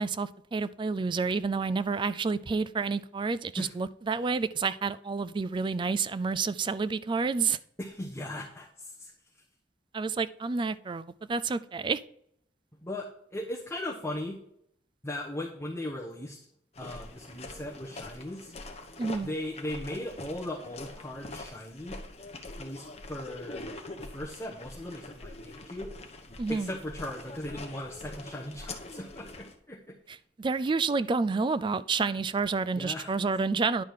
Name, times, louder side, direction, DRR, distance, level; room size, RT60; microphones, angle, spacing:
voice 1, 0.0-7.6 9.9-12.0 19.0-19.3 26.4-26.7 30.1-33.8, right 4 dB, 25° right, 15 dB, 0.3 m, -29 dB
voice 2, 7.8-9.1 12.8-14.4 15.0-16.4 16.8-18.5 19.2-22.0 22.6-23.7 24.1-25.9 26.5-30.0 32.8-33.1, left 1 dB, 15° left, -4 dB, 1.0 m, -38 dB
sound 1, 16.7-29.5, left 2 dB, 35° left, 1.0 m, -44 dB
10.5 x 3.8 x 6.4 m, 0.71 s
head